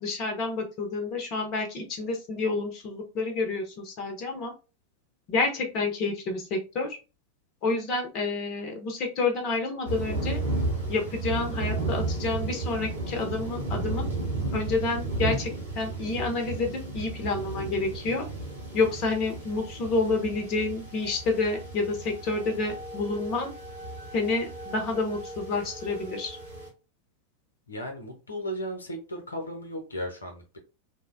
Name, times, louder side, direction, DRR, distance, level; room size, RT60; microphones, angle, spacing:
voice 1, 0.0-4.5 5.3-7.0 7.6-10.4 10.9-14.1 14.5-18.3 18.7-23.5 24.1-26.4, left 3 dB, 40° left, 0.6 m, -29 dB
sound 1, 9.8-26.7, right 2 dB, 75° right, 1.2 m, -34 dB
voice 2, 27.7-30.6, equal, 75° left, 0.6 m, -35 dB
2.6 x 2.1 x 2.5 m
figure-of-eight pair, 90°, 0 cm